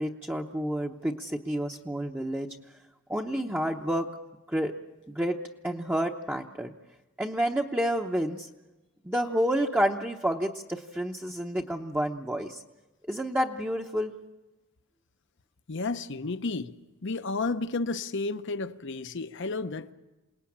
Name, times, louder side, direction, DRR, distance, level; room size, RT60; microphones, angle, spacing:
voice 1, 0.0-2.5 3.1-4.1 4.5-4.7 5.1-5.4 5.6-6.7 7.2-8.5 9.0-12.6 13.1-14.1, equal, 10° right, 0.8 m, -29 dB
voice 2, 15.7-16.7 17.0-19.9, left 3 dB, 60° left, 0.8 m, -32 dB
27.5 x 19.0 x 8.6 m
head